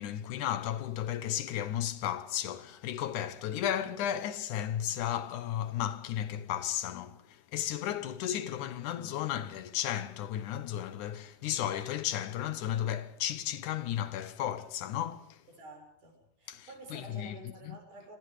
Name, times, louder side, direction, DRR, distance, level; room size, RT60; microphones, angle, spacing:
voice 1, 0.0-15.4 16.5-17.8, left 11 dB, 80° left, 2.6 m, -34 dB
voice 2, 15.5-18.2, right 2 dB, 85° right, 7.9 m, -50 dB
26.5 x 26.0 x 5.0 m
omnidirectional pair, 3.5 m